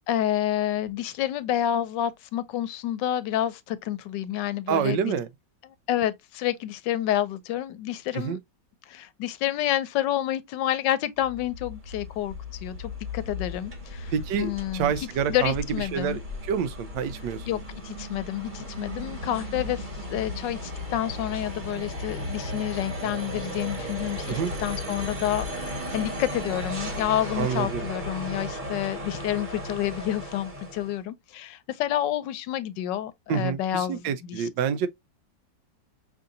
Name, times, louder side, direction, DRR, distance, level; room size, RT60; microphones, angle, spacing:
voice 1, 0.1-5.1 5.6-8.4 8.9-16.2 17.5-34.5, left 12 dB, 80° left, 1.2 m, -29 dB
voice 2, 4.7-5.3 8.1-8.4 14.1-15.6 15.9-17.6 24.3-24.5 27.4-27.9 33.3-34.9, right 7 dB, 80° right, 1.3 m, -28 dB
sound 1, 11.2-31.0, left 1 dB, 30° right, 1.3 m, -35 dB
5.2 x 2.7 x 2.5 m
omnidirectional pair, 1.9 m